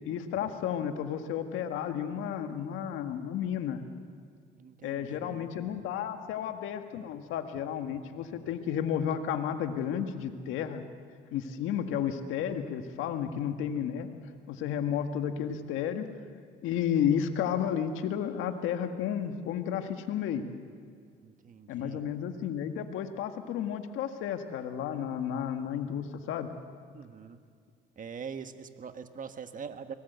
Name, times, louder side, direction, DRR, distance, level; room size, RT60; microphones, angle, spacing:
voice 1, 0.0-3.8 4.8-10.8 11.3-14.1 14.5-16.1 16.6-20.4 21.7-26.5, left 9 dB, 80° left, 6 dB, 1.8 m, -32 dB
voice 2, 2.1-2.9 4.6-5.5 21.2-22.0 26.9-27.4 28.0-29.9, right 6 dB, 40° right, 8 dB, 1.6 m, -44 dB
24.0 x 19.5 x 8.2 m, 2.1 s
cardioid pair, 90°, 20 cm